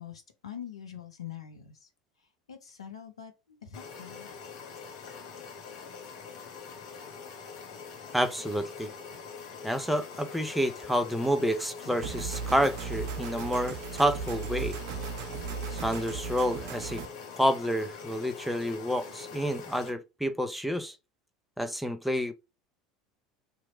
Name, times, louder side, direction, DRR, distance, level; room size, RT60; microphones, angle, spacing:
voice 1, 0.0-1.9 2.5-4.4, left 9 dB, 90° left, 0.8 m, -44 dB
sound 1, 3.7-19.9, left 5 dB, 65° left, 1.2 m, -44 dB
voice 2, 8.1-8.9 9.6-14.8 15.7-17.0 17.4-20.9 21.6-22.3, equal, ahead, 0.6 m, -29 dB
sound 2, 12.0-17.1, right 6 dB, 65° right, 0.6 m, -37 dB
3.0 x 2.4 x 4.3 m
hypercardioid pair, 80°, 3 cm